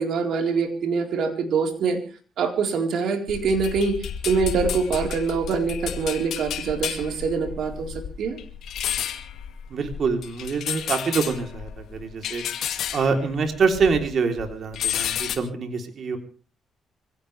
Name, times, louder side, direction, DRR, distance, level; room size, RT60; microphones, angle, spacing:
voice 1, 0.0-2.0 2.4-4.0 4.3-8.4, right 5 dB, 70° right, 4 dB, 4.2 m, -24 dB
sound 1, 3.3-14.1 14.4-15.4, left 9 dB, 75° left, 2.2 m, -31 dB
voice 2, 9.7-12.4 12.9-16.2, right 5 dB, 55° right, 5 dB, 3.5 m, -25 dB
25.0 x 17.0 x 3.4 m, 0.38 s
cardioid pair, 90°, 0 cm